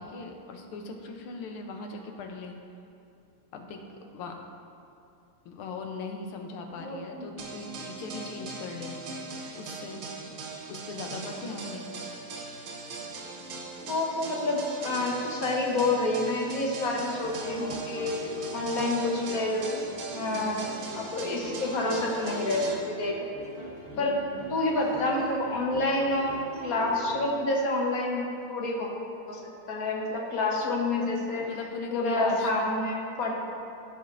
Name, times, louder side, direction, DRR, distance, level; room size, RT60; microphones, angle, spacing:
voice 1, 0.0-2.6 3.5-4.4 5.4-9.0 9.5-10.3 10.7-11.9 20.3-20.6 23.9-24.5 30.6-30.7 31.4-32.7, left 3 dB, 90° left, 3 dB, 1.7 m, -39 dB
voice 2, 6.8-7.3 13.9-18.1 18.5-19.8 20.1-23.5 24.0-24.1 24.5-28.9 29.3-29.4 29.7-31.5 31.9-33.3, left 2 dB, 50° left, -1 dB, 1.2 m, -28 dB
sound 1, 7.4-22.7, right 3 dB, 75° right, 1.8 m, -40 dB
sound 2, 17.2-27.7, right 3 dB, 35° right, 1.3 m, -43 dB
15.0 x 5.4 x 2.6 m, 2.5 s
omnidirectional pair, 2.3 m